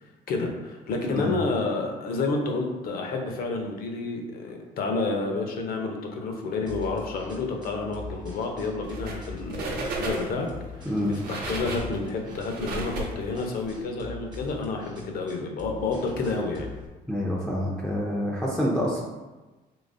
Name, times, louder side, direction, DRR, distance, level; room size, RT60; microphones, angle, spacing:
voice 1, 0.3-10.5 11.3-16.7, left 3 dB, 60° left, 2 dB, 0.7 m, -30 dB
sound 1, 6.7-16.9, left 3 dB, 25° right, 0.8 m, -43 dB
sound 2, 8.8-9.2 9.5-10.5 11.0-13.6, right 2 dB, 65° right, 0.8 m, -33 dB
voice 2, 17.1-19.0, equal, 5° left, -5 dB, 0.5 m, -27 dB
3.9 x 2.9 x 2.6 m, 1.2 s
cardioid pair, 110°, 17 cm